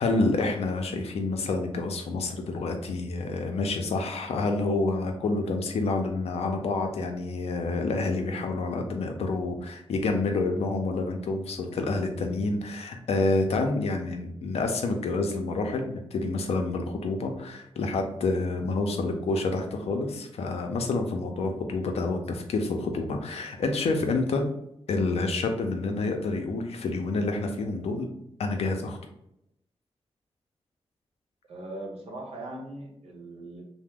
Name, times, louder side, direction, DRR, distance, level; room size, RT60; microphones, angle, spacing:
voice 1, 0.0-24.5 24.9-28.1 28.4-29.0, left 3 dB, 85° left, 4 dB, 0.5 m, -28 dB
voice 2, 31.5-33.6, right 1 dB, 90° right, 0 dB, 0.8 m, -40 dB
2.9 x 2.1 x 3.5 m, 0.80 s
cardioid pair, 70°, 10 cm